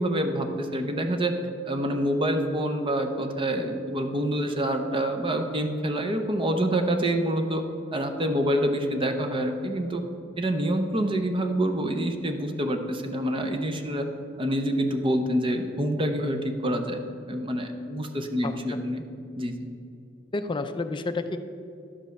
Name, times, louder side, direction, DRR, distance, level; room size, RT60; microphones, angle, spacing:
voice 1, 0.0-1.3 1.7-7.6 7.9-10.0 10.4-14.1 14.4-17.0 17.3-19.0 19.4-19.6, right 1 dB, 25° right, 6 dB, 0.7 m, -26 dB
voice 2, 18.4-18.8 20.3-21.4, left 3 dB, 25° left, 9 dB, 0.4 m, -30 dB
11.0 x 5.3 x 6.5 m, 2.5 s
head